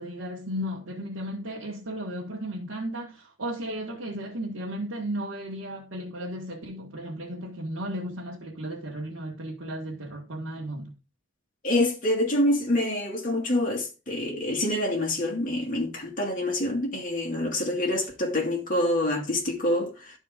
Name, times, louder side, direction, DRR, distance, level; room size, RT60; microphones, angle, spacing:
voice 1, 0.0-11.0, equal, 85° right, 1.7 m, -35 dB
voice 2, 11.6-20.1, left 1 dB, 45° left, 2.3 m, -26 dB
12.0 x 4.5 x 3.6 m
head